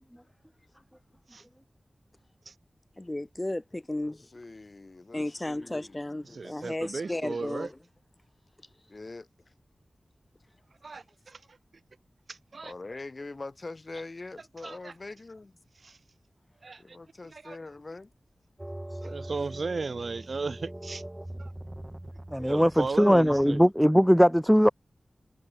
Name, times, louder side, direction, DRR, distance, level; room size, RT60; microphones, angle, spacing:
voice 1, 3.0-4.3 5.1-7.7 19.0-19.1, left 1 dB, 25° left, 2.6 m, -34 dB
voice 2, 4.0-6.0 6.3-7.0 8.9-9.3 12.6-15.5 16.8-18.1, left 3 dB, 50° left, 2.0 m, -43 dB
voice 3, 6.2-7.7 10.8-11.6 12.3-12.7 14.6-14.9 15.7-16.0 16.6-17.0 17.3-17.6 19.0-21.0 21.4-21.5 22.4-23.7, right 4 dB, 70° right, 1.6 m, -36 dB
sound 1, 18.6-23.6, right 1 dB, 20° right, 1.8 m, -42 dB
voice 4, 22.3-24.7, equal, ahead, 0.4 m, -20 dB
cardioid pair, 45°, 0 cm